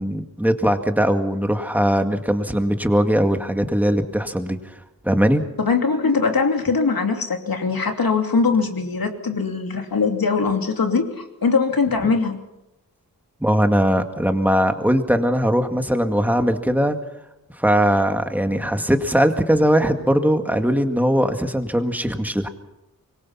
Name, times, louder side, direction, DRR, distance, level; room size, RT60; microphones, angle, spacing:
voice 1, 0.0-4.7 5.0-5.4 13.4-17.0 17.6-22.5, equal, 5° right, 6 dB, 2.1 m, -20 dB
voice 2, 5.6-12.4, left 4 dB, 75° left, 4 dB, 2.9 m, -21 dB
25.0 x 22.5 x 5.8 m, 0.93 s
wide cardioid pair, 85°, 36 cm